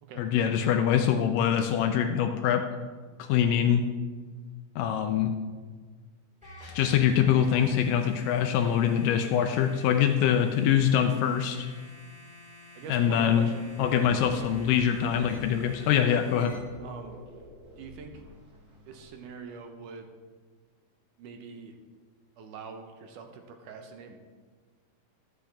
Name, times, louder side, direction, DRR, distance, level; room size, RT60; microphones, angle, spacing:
voice 1, 0.2-2.6 3.2-3.8 4.8-5.3 6.7-11.7 12.9-13.5 13.8-16.5, left 9 dB, 85° left, 6 dB, 2.0 m, -24 dB
sound 1, 6.4-16.4, left 2 dB, ahead, 2.4 m, -50 dB
voice 2, 12.7-14.5 14.8-15.4 16.8-17.2 17.8-18.2 18.9-20.1 21.2-21.8 22.4-24.2, right 5 dB, 70° right, 5 dB, 2.0 m, -44 dB
sound 2, 13.6-19.1, right 1 dB, 90° right, 5.4 m, -48 dB
13.0 x 8.6 x 3.4 m, 1.5 s
omnidirectional pair, 4.4 m